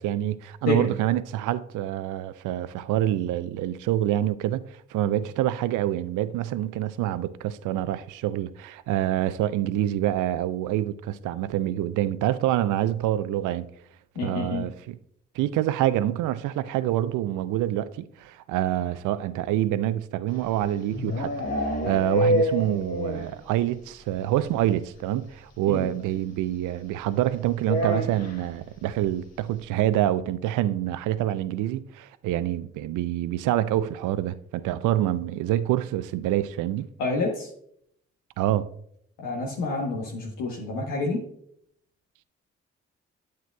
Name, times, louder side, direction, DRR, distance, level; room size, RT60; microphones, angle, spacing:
voice 1, 0.0-13.7 14.2-15.0 15.3-21.3 21.6-36.9 38.4-38.7, right 13 dB, 75° right, 0.5 m, -26 dB
voice 2, 14.2-14.7 25.7-25.9 37.0-37.5 39.2-41.2, left 3 dB, 85° left, 1.1 m, -28 dB
sound 1, 20.4-23.4 23.7-23.8 24.1-24.2 24.4-24.6 25.8-25.9 27.6-28.5, left 1 dB, 55° left, 1.3 m, -27 dB
9.3 x 7.7 x 2.3 m
hypercardioid pair, 45°, 31 cm